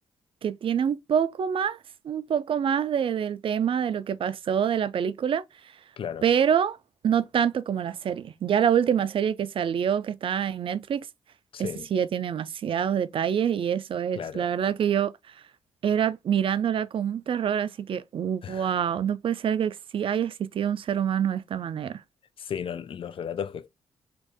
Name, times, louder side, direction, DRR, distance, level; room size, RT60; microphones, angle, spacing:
voice 1, 0.4-1.8 2.0-5.4 6.2-6.8 7.0-11.1 11.6-15.1 15.8-22.0, right 8 dB, 55° right, 0.4 m, -26 dB
voice 2, 11.5-11.9 14.1-14.5 18.4-18.8 22.4-23.7, left 8 dB, 55° left, 0.5 m, -34 dB
2.9 x 2.7 x 3.4 m
supercardioid pair, 55°, 11 cm